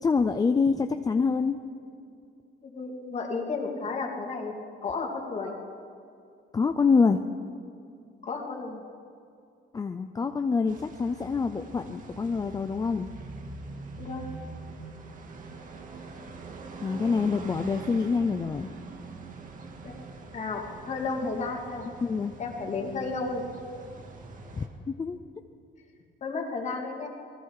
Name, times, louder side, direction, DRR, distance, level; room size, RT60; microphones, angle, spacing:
voice 1, 0.0-1.6 6.5-7.2 9.7-13.1 16.8-18.7 21.4-21.5 22.0-22.3 24.6-25.2, left 5 dB, 20° left, 7 dB, 0.5 m, -26 dB
voice 2, 2.6-4.5 4.8-5.6 8.2-8.8 14.0-14.3 19.8-20.0 20.3-21.9 22.4-23.4 26.2-27.1, left 4 dB, 35° left, 1 dB, 2.7 m, -33 dB
sound 1, 10.7-24.7, right 3 dB, 40° right, 1.9 m, -43 dB
28.0 x 20.0 x 4.9 m, 2.5 s
cardioid pair, 175°, 21 cm